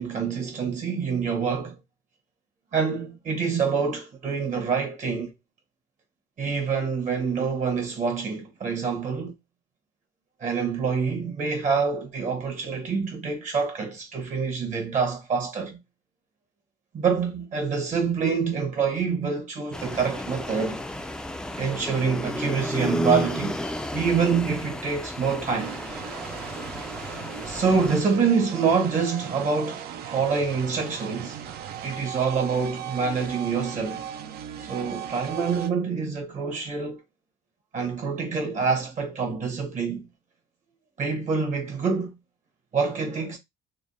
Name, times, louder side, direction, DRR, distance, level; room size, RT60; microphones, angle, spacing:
voice 1, 0.0-1.8 2.7-5.3 6.4-9.3 10.4-15.8 16.9-20.8 21.6-23.6 23.9-25.8 27.4-31.5 31.8-34.0 34.6-37.0 37.7-40.1 41.0-42.1 42.7-43.4, right 5 dB, 45° right, 1.1 m, -26 dB
sound 1, 19.7-28.0, left 1 dB, 5° left, 0.3 m, -32 dB
sound 2, 25.6-35.7, right 9 dB, 65° right, 0.5 m, -38 dB
3.4 x 2.2 x 2.6 m
cardioid pair, 110°, 17 cm